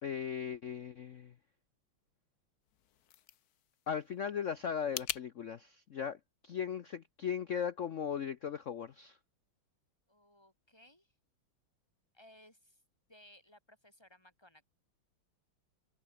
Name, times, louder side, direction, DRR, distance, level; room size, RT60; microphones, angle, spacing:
voice 1, 0.0-1.3 3.9-6.2 6.4-9.2, left 7 dB, 80° left, 0.6 m, -37 dB
sound 1, 2.6-5.3, left 11 dB, 60° left, 1.1 m, -44 dB
voice 2, 10.1-11.1 12.1-12.8 13.1-14.6, left 1 dB, 10° left, 6.1 m, -61 dB
omnidirectional pair, 2.3 m